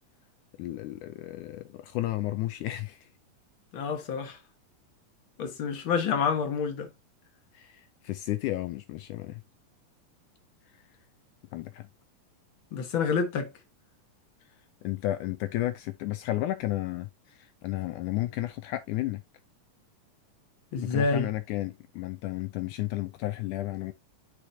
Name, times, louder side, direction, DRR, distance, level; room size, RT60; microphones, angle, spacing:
voice 1, 0.6-3.1 7.5-9.4 11.5-11.9 14.8-17.1 17.4-19.2 20.8-23.9, left 16 dB, 80° left, 1.9 m, -32 dB
voice 2, 3.7-4.4 5.4-6.9 12.7-13.5 20.7-21.3, left 5 dB, 50° left, 1.6 m, -28 dB
8.5 x 4.9 x 2.7 m
omnidirectional pair, 4.0 m